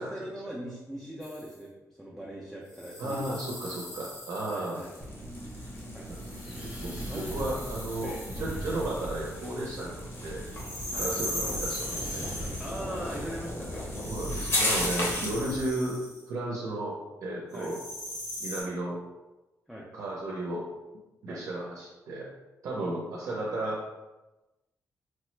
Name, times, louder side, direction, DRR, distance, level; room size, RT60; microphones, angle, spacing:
voice 1, 0.0-3.8 4.5-4.9 5.9-7.4 8.0-8.5 10.9-11.1 12.6-13.9 14.8-15.3 17.5-17.7 19.7-19.9 21.3-21.4 22.8-22.9, equal, ahead, -4 dB, 0.3 m, -41 dB
sound 1, 1.2-1.5 2.7-5.0 6.1-9.3 10.5-12.9 13.9-16.2 17.5-18.6, left 1 dB, 75° left, 1.1 m, -39 dB
voice 2, 3.0-4.8 6.1-6.2 6.4-10.4 11.0-12.2 14.0-16.0 16.3-17.8 18.4-19.0 19.9-20.7 21.2-22.3 22.6-23.8, right 1 dB, 65° right, -3 dB, 0.5 m, -34 dB
sound 2, 4.7-15.5, left 1 dB, 40° left, 0.7 m, -37 dB
Wind, 5.0-15.7, right 1 dB, 15° right, 0.8 m, -40 dB
3.1 x 2.0 x 3.1 m, 1.1 s
wide cardioid pair, 165°, 6 cm